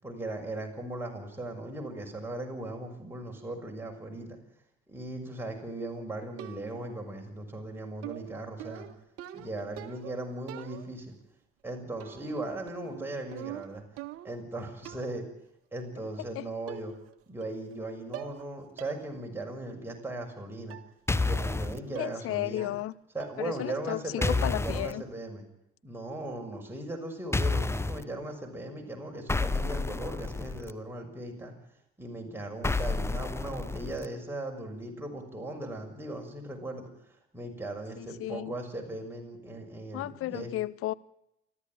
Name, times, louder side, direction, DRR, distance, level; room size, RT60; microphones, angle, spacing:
voice 1, 0.0-4.4 4.9-8.9 9.3-11.2 11.6-13.8 14.2-15.2 15.7-16.9 17.3-20.8 21.2-22.8 23.1-25.4 25.8-31.5 32.0-40.5, right 2 dB, 5° right, 6.3 m, -38 dB
sound 1, 6.4-6.9 8.0-10.2 10.5-11.1 12.0-12.4 12.7-14.5 14.8-15.2 16.2-16.3 16.7-17.1 17.4-17.8 18.1-18.5 18.8-19.0 19.4-19.5 20.7-20.9 21.3-21.6 21.9-22.3 22.6-22.9 23.2-23.5, right 13 dB, 50° right, 1.6 m, -44 dB
sound 2, 21.1-21.8 24.2-24.9 27.3-28.0 29.3-30.7 32.6-34.1, left 3 dB, 10° left, 1.0 m, -29 dB
voice 2, 21.9-22.9 23.4-25.0 38.0-38.5 39.9-40.9, left 15 dB, 50° left, 0.8 m, -34 dB
28.0 x 12.0 x 9.1 m
figure-of-eight pair, 55°, 29 cm